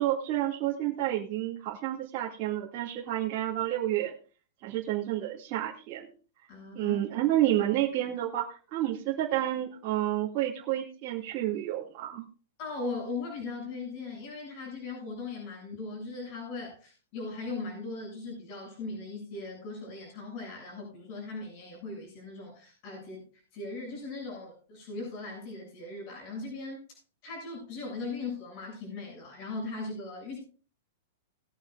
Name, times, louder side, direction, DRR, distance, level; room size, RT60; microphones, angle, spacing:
voice 1, 0.0-4.1 4.6-6.1 6.7-12.2, right 13 dB, 30° right, -6 dB, 2.4 m, -30 dB
voice 2, 6.5-7.0 12.6-26.8 27.2-30.4, left 3 dB, 35° left, -1 dB, 7.3 m, -39 dB
20.0 x 9.5 x 2.6 m, 0.37 s
supercardioid pair, 170°, 0 cm